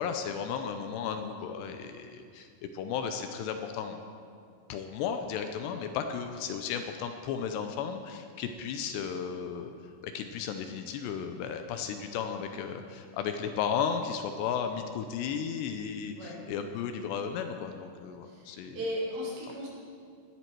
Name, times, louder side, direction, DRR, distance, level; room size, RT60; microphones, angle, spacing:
voice 1, 0.0-2.5 2.7-4.0 4.7-9.7 10.0-18.8, left 7 dB, 80° left, 6 dB, 2.7 m, -34 dB
voice 2, 18.2-19.7, equal, 70° right, -5 dB, 5.2 m, -36 dB
18.0 x 12.0 x 4.6 m, 2.3 s
omnidirectional pair, 5.2 m